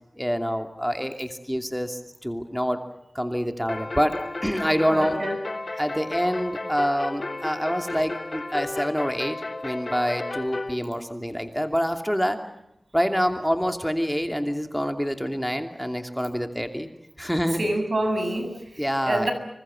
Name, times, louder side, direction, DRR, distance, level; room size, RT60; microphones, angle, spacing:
voice 1, 0.2-2.8 3.1-5.2 5.8-12.4 12.9-16.9 17.2-17.6 18.8-19.3, equal, ahead, 5 dB, 2.7 m, -26 dB
sound 1, 3.7-10.7, left 2 dB, 50° left, 2.4 m, -33 dB
voice 2, 4.9-5.4 5.7-5.8 17.6-19.3, right 1 dB, 60° right, 7 dB, 7.0 m, -27 dB
27.0 x 24.5 x 7.7 m, 0.82 s
cardioid pair, 40°, 0 cm